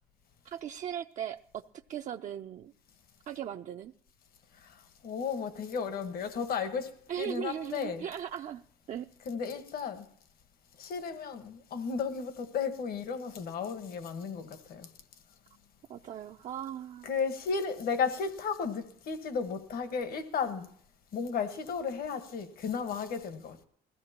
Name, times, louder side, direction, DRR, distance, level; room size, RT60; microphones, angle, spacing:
voice 1, 0.4-1.6 1.9-2.7 3.3-3.9 7.1-8.6 8.9-9.1 15.9-17.1, right 10 dB, 50° right, 0.5 m, -38 dB
voice 2, 4.6-8.1 9.2-10.1 10.8-14.9 17.0-20.7 21.1-23.6, left 6 dB, 60° left, 1.4 m, -34 dB
20.5 x 15.5 x 2.9 m
cardioid pair, 110°, 17 cm